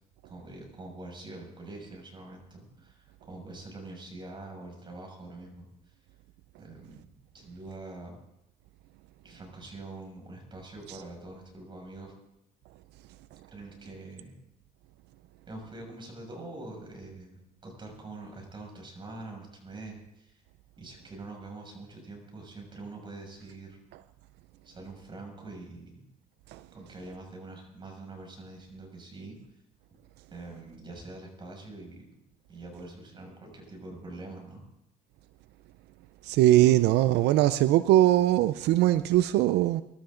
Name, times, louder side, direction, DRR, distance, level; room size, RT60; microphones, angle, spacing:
voice 1, 0.2-6.0 6.6-8.2 9.2-12.1 13.5-14.3 15.5-20.4 20.8-23.8 24.6-26.0 26.7-29.6 30.3-32.1 32.5-34.6, right 2 dB, 30° right, 6.5 m, -44 dB
voice 2, 36.2-39.8, right 14 dB, 85° right, 0.5 m, -21 dB
24.0 x 13.0 x 3.8 m
cardioid pair, 110°, 17 cm